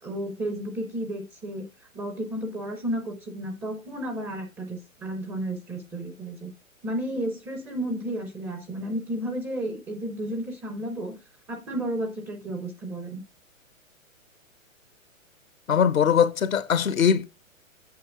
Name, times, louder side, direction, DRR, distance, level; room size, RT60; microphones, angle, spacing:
voice 1, 0.0-1.7 1.9-6.5 6.8-11.2 11.5-13.2, right 1 dB, 5° right, 0.4 m, -32 dB
voice 2, 15.7-17.2, left 7 dB, 80° left, 0.9 m, -21 dB
7.9 x 6.6 x 3.5 m
figure-of-eight pair, 120°, 41 cm